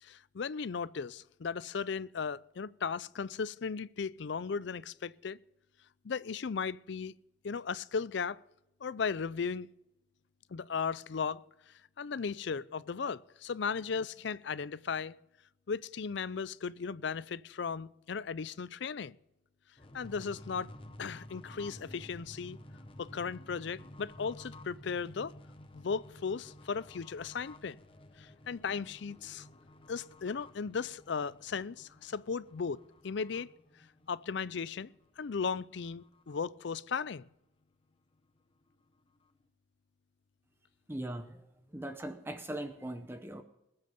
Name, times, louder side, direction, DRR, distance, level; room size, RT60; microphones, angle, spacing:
voice 1, 0.0-5.4 6.0-7.1 7.4-8.4 8.8-9.7 10.5-11.4 12.0-15.2 15.7-19.2 19.9-20.7 21.0-22.6 23.0-25.3 25.7-27.8 28.2-29.5 29.9-33.5 34.1-37.2, left 5 dB, 65° left, 0.4 m, -36 dB
sound 1, 19.8-35.0 35.4-35.5 35.7-36.4, left 1 dB, 25° left, 0.9 m, -53 dB
voice 2, 40.9-41.5 41.7-43.4, right 1 dB, 10° right, 0.7 m, -40 dB
20.5 x 8.1 x 5.2 m
head